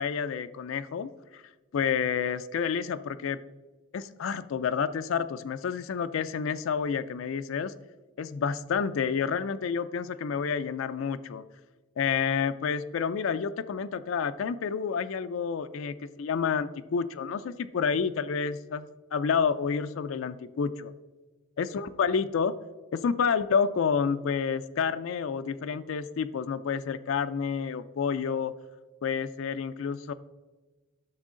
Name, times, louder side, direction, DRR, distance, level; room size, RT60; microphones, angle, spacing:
voice 1, 0.0-1.4 1.7-3.4 3.9-7.7 8.2-11.4 12.0-20.9 21.6-22.6 22.9-28.5 29.0-30.1, left 6 dB, 70° left, 11 dB, 0.4 m, -29 dB
11.0 x 6.2 x 3.7 m, 1.2 s
head